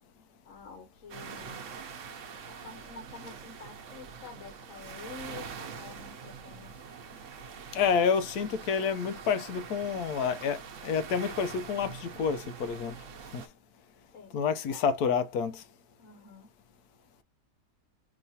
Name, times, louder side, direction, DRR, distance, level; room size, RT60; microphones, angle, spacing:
voice 1, 0.4-1.6 2.5-6.7 14.1-14.8 16.0-16.5, left 4 dB, 60° left, 1.3 m, -48 dB
sound 1, 1.1-13.5, right 6 dB, 60° right, 1.0 m, -44 dB
voice 2, 7.7-13.0 13.3-13.4 14.3-15.6, left 6 dB, 80° left, 1.2 m, -29 dB
4.9 x 3.1 x 2.7 m
omnidirectional pair, 1.6 m